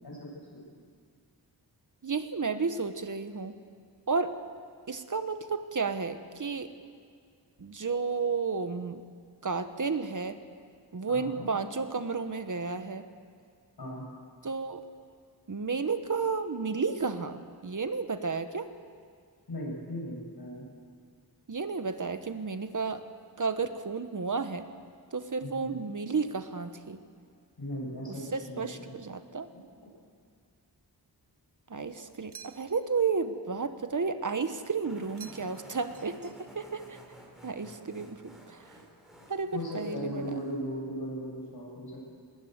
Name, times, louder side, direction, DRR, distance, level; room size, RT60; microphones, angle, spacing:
voice 1, 2.0-3.5 4.1-4.3 4.9-6.7 7.6-9.0 9.4-10.4 10.9-13.0 14.4-14.8 15.5-18.7 21.5-23.0 23.4-24.7 25.1-27.0 28.1-29.5 31.7-37.0 37.4-38.7 39.3-40.2, right 4 dB, 50° right, 10 dB, 1.1 m, -32 dB
voice 2, 11.1-11.4 13.8-14.0 19.5-20.6 25.4-25.7 27.6-29.0 39.5-42.1, equal, 70° left, -3 dB, 7.9 m, -38 dB
sound 1, 32.3-32.9 35.2-35.7 35.9-36.7, right 6 dB, 70° right, 1.2 m, -51 dB
sound 2, 34.8-40.6, equal, ahead, 5.0 m, -53 dB
20.0 x 19.5 x 8.1 m, 2.1 s
wide cardioid pair, 100°, 41 cm